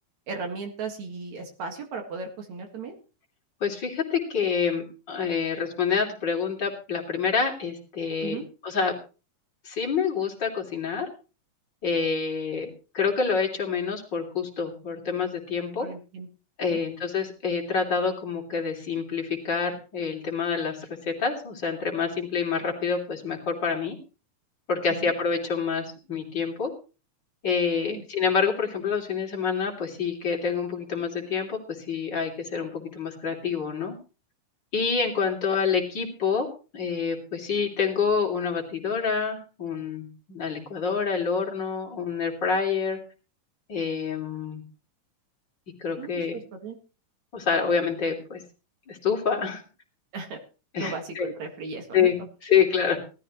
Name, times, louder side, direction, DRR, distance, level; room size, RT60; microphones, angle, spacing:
voice 1, 0.3-2.9 8.2-8.4 15.8-16.3 16.6-16.8 24.9-25.1 27.9-28.0 46.0-46.8 50.1-50.4 50.8-52.1, right 4 dB, 65° right, 4 dB, 3.1 m, -36 dB
voice 2, 3.6-8.4 8.6-9.0 9.6-11.1 11.8-12.7 12.9-15.9 16.6-24.0 24.7-26.7 27.4-34.0 34.7-36.5 36.7-43.0 43.7-44.6 45.8-46.4 47.3-48.4 48.9-49.6 50.7-51.3 51.9-53.0, left 6 dB, 35° left, 0 dB, 3.5 m, -27 dB
18.0 x 13.5 x 3.1 m, 0.33 s
omnidirectional pair, 3.7 m